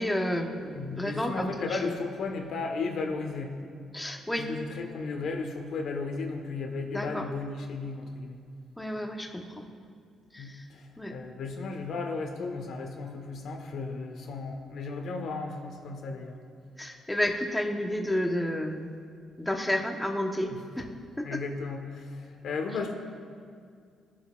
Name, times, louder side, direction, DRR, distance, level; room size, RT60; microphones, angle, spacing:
voice 1, 0.0-1.8 3.9-4.5 6.9-7.2 8.8-9.7 10.3-10.6 11.0-11.1 16.8-18.9 19.4-20.8 21.2-21.4, left 1 dB, 5° left, 3 dB, 1.1 m, -31 dB
voice 2, 0.7-3.6 4.4-8.4 10.4-16.4 20.5-20.6 21.2-22.9, left 4 dB, 70° left, 3 dB, 1.3 m, -35 dB
19.0 x 7.6 x 2.5 m, 2.2 s
cardioid pair, 90°, 0 cm